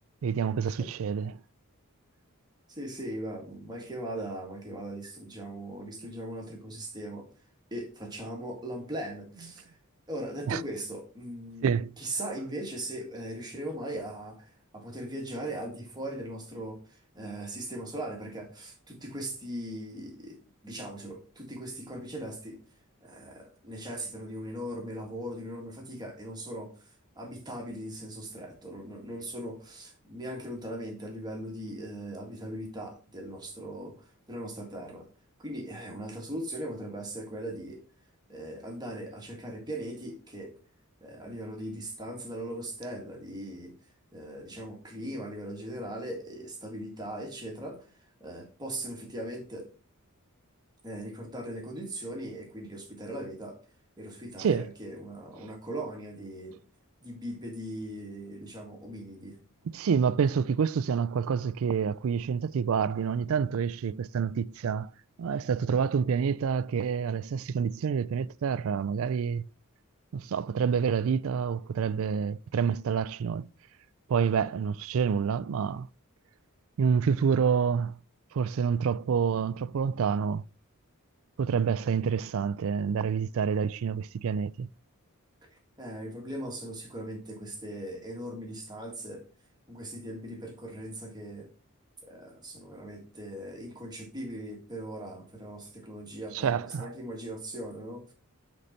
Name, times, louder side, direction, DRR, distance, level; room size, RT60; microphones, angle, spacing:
voice 1, 0.2-1.4 10.5-10.6 11.6-11.9 54.4-54.6 59.7-64.9 65.2-69.5 70.1-73.5 74.1-75.9 76.8-78.0 78.3-80.4 81.4-84.7 96.3-96.9, right 6 dB, 65° right, 0.3 m, -28 dB
voice 2, 2.7-7.3 7.7-9.8 10.1-11.7 12.0-22.6 23.0-35.1 35.4-37.8 38.3-40.5 41.0-43.7 44.1-49.7 50.8-53.6 54.0-56.6 57.0-59.4 85.8-89.2 89.7-91.5 92.0-98.1, right 1 dB, 20° right, 1.8 m, -39 dB
8.4 x 4.1 x 4.3 m
head